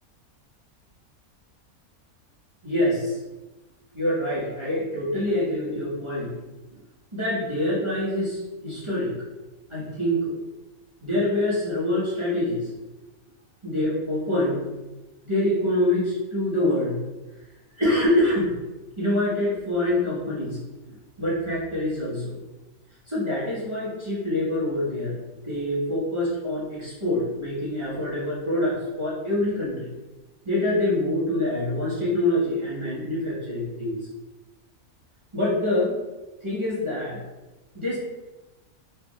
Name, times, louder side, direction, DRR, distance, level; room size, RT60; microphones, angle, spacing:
voice 1, 2.6-3.2 3.9-6.3 7.1-9.1 9.7-10.3 11.0-12.7 13.6-14.6 15.2-17.0 17.8-18.5 19.0-20.6 21.2-22.4 23.1-25.1 25.4-29.9 30.4-34.0 35.3-36.0 36.4-37.2 37.7-38.0, left 1 dB, 20° right, -10 dB, 1.2 m, -25 dB
4.7 x 3.4 x 2.4 m, 1.1 s
omnidirectional pair, 1.5 m